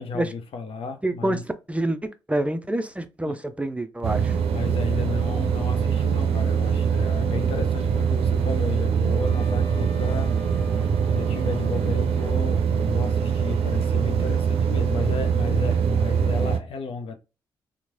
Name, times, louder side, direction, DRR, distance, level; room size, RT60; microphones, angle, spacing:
voice 1, 0.0-1.4 3.2-3.4 4.5-17.2, left 4 dB, 60° left, 0.5 m, -33 dB
voice 2, 1.0-1.4 1.7-4.4, right 1 dB, 10° right, 0.4 m, -27 dB
sound 1, 4.0-16.6, right 7 dB, 65° right, 0.5 m, -23 dB
Wind instrument woodwind instrument, 9.2-12.4, right 1 dB, 10° left, 1.4 m, -45 dB
3.0 x 2.1 x 2.6 m
hypercardioid pair, 40°, 11 cm